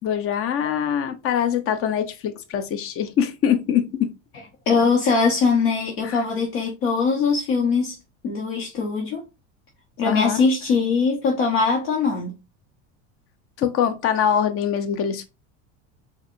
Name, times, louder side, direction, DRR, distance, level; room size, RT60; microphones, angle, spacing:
voice 1, 0.0-4.1 6.0-6.2 10.0-10.4 13.6-15.3, left 8 dB, 40° left, 0.7 m, -23 dB
voice 2, 4.7-7.9 8.2-9.2 10.0-12.3, left 4 dB, 70° left, 1.3 m, -21 dB
4.7 x 2.6 x 2.6 m
supercardioid pair, 110°, 36 cm